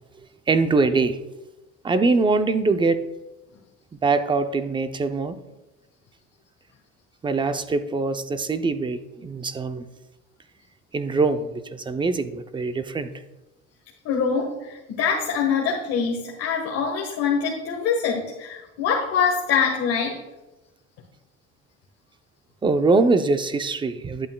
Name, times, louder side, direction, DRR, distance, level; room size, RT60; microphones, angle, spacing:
voice 1, 0.5-1.2 1.8-3.0 4.0-5.4 7.2-9.8 10.9-13.1 22.6-24.3, right 3 dB, 15° right, 10 dB, 0.5 m, -23 dB
voice 2, 14.0-20.2, left 6 dB, 60° left, -2 dB, 1.5 m, -24 dB
11.0 x 8.5 x 2.2 m, 1.0 s
cardioid pair, 130°, 29 cm